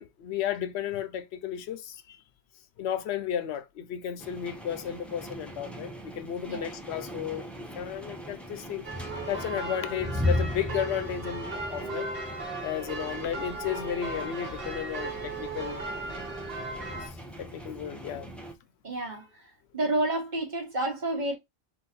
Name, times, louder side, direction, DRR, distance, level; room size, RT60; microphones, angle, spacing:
voice 1, 0.0-2.2 2.8-7.5 7.7-8.9 9.3-12.1 12.6-15.8 17.0-18.3, left 9 dB, 80° left, 0.9 m, -33 dB
sound 1, 4.2-18.5, left 1 dB, ahead, 0.4 m, -38 dB
sound 2, 8.8-17.1, right 2 dB, 65° right, 1.4 m, -37 dB
voice 2, 18.8-21.4, right 1 dB, 45° right, 1.1 m, -30 dB
3.8 x 2.7 x 4.1 m
omnidirectional pair, 1.1 m